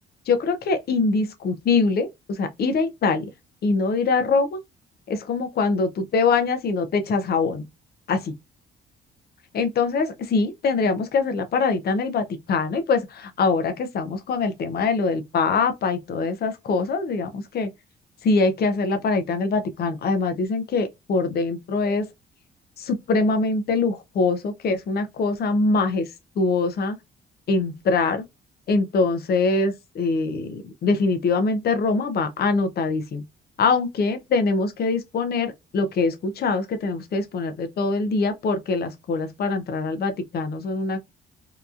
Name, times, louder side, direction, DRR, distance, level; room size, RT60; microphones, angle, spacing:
voice 1, 0.3-3.3 3.6-4.6 5.1-7.6 8.1-8.2 9.5-17.7 18.2-22.1 22.8-26.1 26.4-27.0 27.5-28.2 28.7-33.2 33.6-41.0, left 4 dB, 50° left, 0.6 m, -23 dB
2.8 x 2.3 x 2.4 m
cardioid pair, 90°, 20 cm